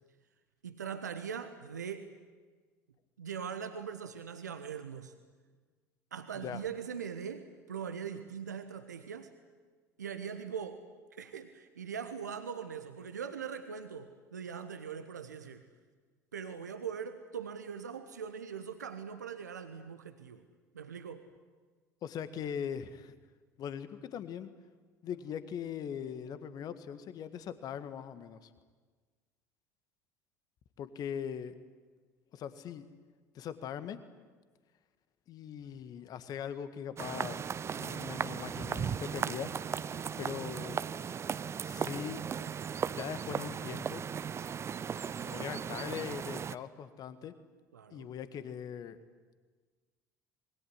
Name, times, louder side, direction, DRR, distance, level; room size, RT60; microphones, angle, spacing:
voice 1, 0.6-2.1 3.2-5.1 6.1-9.3 10.0-10.8 11.1-15.6 16.3-20.4 20.7-21.3 47.7-48.1, right 7 dB, 75° right, 9 dB, 1.3 m, -41 dB
voice 2, 22.0-23.2 23.6-24.5 25.0-28.5 30.8-31.5 32.3-32.9 33.4-34.0 35.3-39.5 39.9-40.9 41.6-42.2 43.0-44.0 45.2-47.3 47.9-49.0, left 8 dB, 45° left, 12 dB, 1.7 m, -41 dB
sound 1, 37.0-46.6, right 7 dB, 30° right, 0.7 m, -37 dB
26.5 x 21.0 x 9.7 m, 1.4 s
figure-of-eight pair, 65°, 9 cm